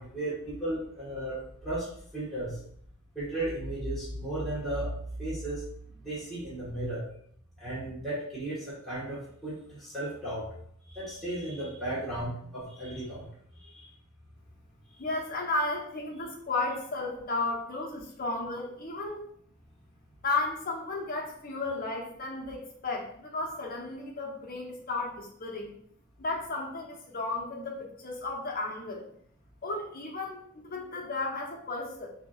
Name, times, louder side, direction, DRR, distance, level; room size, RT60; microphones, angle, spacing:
voice 1, 0.0-1.9 2.1-2.6 3.1-4.9 5.2-5.6 6.0-7.1 7.6-10.5 10.9-13.2 13.6-13.8, right 1 dB, ahead, -10 dB, 1.4 m, -35 dB
voice 2, 15.0-19.2 20.2-25.7 26.2-29.1 29.6-32.1, left 2 dB, 45° left, -1 dB, 1.0 m, -34 dB
5.6 x 2.9 x 2.4 m, 0.64 s
head